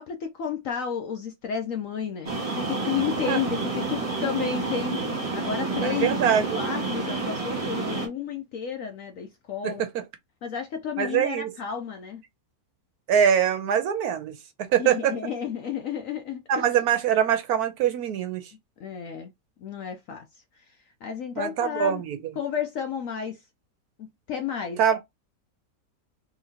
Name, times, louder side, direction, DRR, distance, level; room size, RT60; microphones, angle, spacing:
voice 1, 0.0-5.1 5.3-6.2 6.5-9.8 10.4-12.2 14.8-16.7 18.8-19.3 19.6-22.0 22.4-23.4 24.0-24.8, left 7 dB, 70° left, 0.8 m, -32 dB
sound 1, 2.3-8.1, right 3 dB, 20° right, 1.4 m, -29 dB
voice 2, 5.8-6.6 9.6-9.7 11.0-11.5 13.1-14.3 14.7-15.1 16.5-18.4 21.4-22.2 24.8-25.0, right 8 dB, 70° right, 1.0 m, -23 dB
3.9 x 3.0 x 2.7 m
omnidirectional pair, 1.9 m